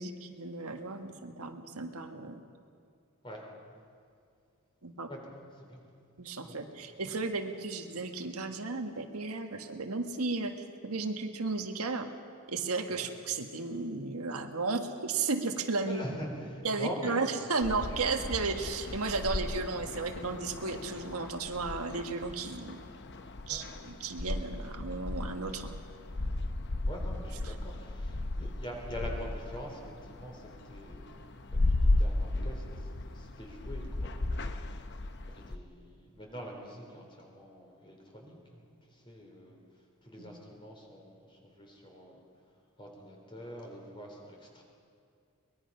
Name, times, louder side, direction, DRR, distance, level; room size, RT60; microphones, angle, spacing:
voice 1, 0.0-2.4 4.8-5.1 6.2-10.5 10.8-12.1 12.5-16.0 16.6-22.8 23.5-25.8 27.4-27.5 40.2-40.4, right 3 dB, 90° right, 5 dB, 1.5 m, -34 dB
voice 2, 5.1-5.8 6.4-6.8 12.9-13.1 15.8-17.3 23.5-23.6 26.9-29.8 30.1-31.4 31.7-34.1 35.3-38.4 38.9-39.6 40.0-42.2 42.8-44.6, equal, 25° left, 0 dB, 3.8 m, -44 dB
sound 1, 17.6-35.6, left 2 dB, 50° left, 0.8 m, -35 dB
23.0 x 20.5 x 5.6 m, 2.4 s
head